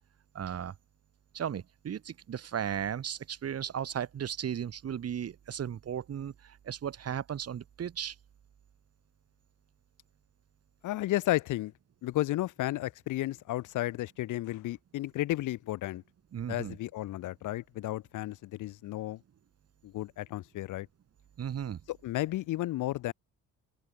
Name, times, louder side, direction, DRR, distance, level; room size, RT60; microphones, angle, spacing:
voice 1, 0.3-0.7 1.3-8.2 16.3-16.8 21.4-21.8, right 9 dB, 55° right, 2.2 m, -36 dB
voice 2, 10.8-11.7 12.0-16.0 16.5-19.2 19.8-20.9 21.9-23.1, left 15 dB, 85° left, 1.4 m, -33 dB
open air
cardioid pair, 90°, 30 cm